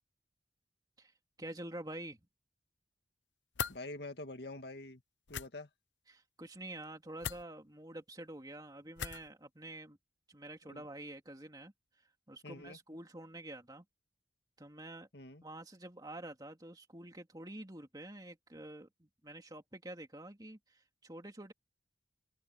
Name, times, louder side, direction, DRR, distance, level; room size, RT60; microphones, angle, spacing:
voice 1, 1.0-2.2 6.1-10.0 10.3-13.8 14.6-15.1 15.4-21.5, right 1 dB, 20° right, 2.7 m, -48 dB
sound 1, 3.5-3.8 5.3-5.5 7.2-7.4 9.0-9.3, left 7 dB, 90° left, 0.9 m, -38 dB
voice 2, 3.7-5.0 5.3-5.7 10.7-10.8 12.4-12.8 15.1-15.4, left 2 dB, 65° left, 2.1 m, -46 dB
open air
head